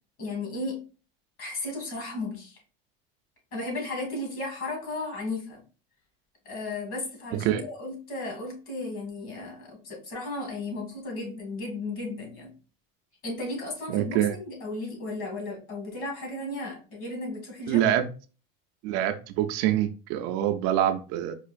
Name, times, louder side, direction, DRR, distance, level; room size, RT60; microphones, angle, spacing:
voice 1, 0.2-0.8 1.4-2.6 3.5-5.6 6.5-12.5 13.2-17.8, left 2 dB, 45° left, 0 dB, 1.9 m, -35 dB
voice 2, 13.9-14.3 17.7-18.0 18.8-21.3, right 12 dB, 60° right, 6 dB, 0.5 m, -25 dB
4.5 x 2.4 x 2.4 m, 0.35 s
supercardioid pair, 130°, 30 cm